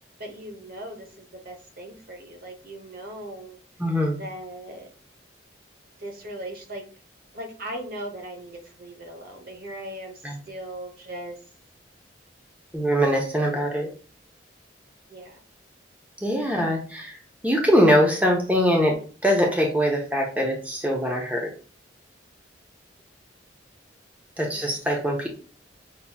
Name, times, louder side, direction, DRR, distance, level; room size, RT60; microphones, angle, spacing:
voice 1, 0.2-3.6 4.2-4.9 6.0-6.8 7.3-11.4 15.1-15.4 16.3-16.4 24.5-24.8, right 1 dB, 50° right, 4 dB, 0.9 m, -39 dB
voice 2, 3.8-4.2 10.2-10.4 12.7-13.9 16.2-17.2 17.4-19.0 19.2-21.5 24.4-25.3, equal, 10° right, 0 dB, 0.7 m, -22 dB
5.6 x 2.9 x 2.2 m, 0.40 s
head